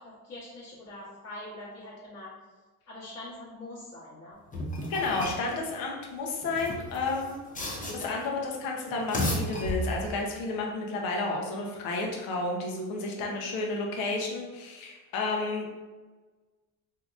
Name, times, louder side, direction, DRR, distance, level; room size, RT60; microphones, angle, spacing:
voice 1, 0.0-2.3 2.9-4.4 13.2-13.4, left 1 dB, 50° left, -11 dB, 1.1 m, -44 dB
sound 1, 4.5-5.5 6.4-8.3 8.9-10.2, left 1 dB, 25° left, 0.6 m, -33 dB
voice 2, 4.9-7.4 7.9-15.7, left 3 dB, 75° left, 0 dB, 0.8 m, -31 dB
3.5 x 2.8 x 2.4 m, 1.3 s
cardioid pair, 120°, 35 cm